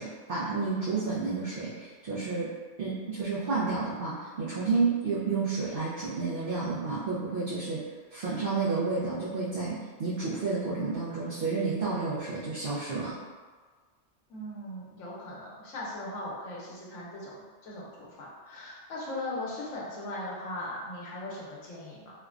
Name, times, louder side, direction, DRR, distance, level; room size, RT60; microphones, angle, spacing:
voice 1, 0.0-2.5 2.8-7.8 8.1-13.2, right 4 dB, 60° right, -9 dB, 0.7 m, -30 dB
voice 2, 14.3-22.1, left 1 dB, 90° left, -5 dB, 1.1 m, -39 dB
3.1 x 2.1 x 2.4 m, 1.5 s
omnidirectional pair, 1.3 m